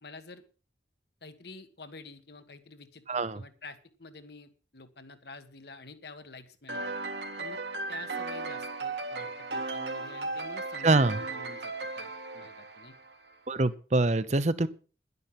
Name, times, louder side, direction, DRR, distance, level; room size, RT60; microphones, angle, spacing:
voice 1, 0.0-0.4 1.2-6.9 7.4-7.6 7.9-12.9, left 3 dB, 65° left, 10 dB, 1.5 m, -48 dB
voice 2, 3.1-3.4 10.8-11.2 13.5-14.7, right 2 dB, 40° right, 15 dB, 0.8 m, -25 dB
sound 1, 6.7-13.3, right 3 dB, 75° right, 1.8 m, -36 dB
11.5 x 11.0 x 5.8 m, 0.37 s
head